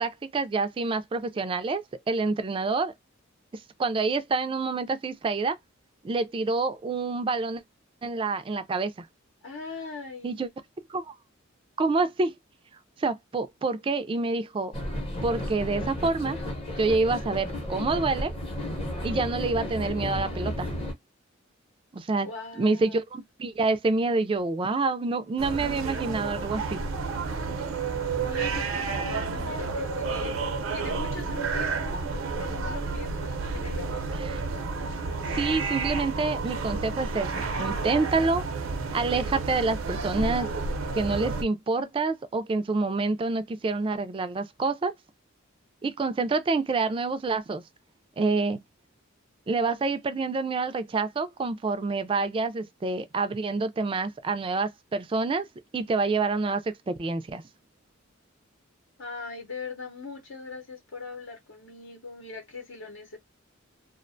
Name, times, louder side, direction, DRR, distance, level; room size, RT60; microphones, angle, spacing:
voice 1, 0.0-2.9 3.8-5.6 6.0-7.6 8.0-9.1 10.2-10.5 10.9-11.1 11.8-12.3 13.0-14.7 15.2-16.4 16.8-18.3 19.0-20.7 21.9-22.3 22.6-26.8 34.2-34.4 35.3-37.3 37.6-38.4 38.9-40.5 40.9-44.9 45.8-47.6 48.2-48.6 49.5-55.5 55.7-57.4, right 3 dB, 25° right, 0.3 m, -27 dB
voice 2, 9.4-10.4 22.2-23.0 28.2-30.3 30.7-34.2 59.0-63.2, left 4 dB, 70° left, 0.8 m, -40 dB
sound 1, 14.7-20.9, left 1 dB, 30° left, 0.7 m, -33 dB
sound 2, 25.4-41.4, right 4 dB, 80° right, 0.5 m, -31 dB
2.4 x 2.1 x 2.5 m
head